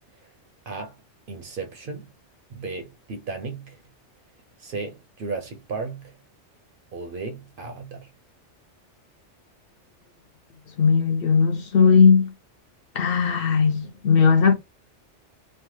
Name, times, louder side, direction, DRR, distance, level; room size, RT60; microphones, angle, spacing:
voice 1, 0.7-1.0 1.3-2.1 2.5-3.8 4.6-6.2 6.9-8.1, right 4 dB, 60° right, 0.6 m, -34 dB
voice 2, 10.8-12.3 13.0-14.5, left 5 dB, 60° left, 0.7 m, -18 dB
3.2 x 2.0 x 3.0 m
omnidirectional pair, 1.2 m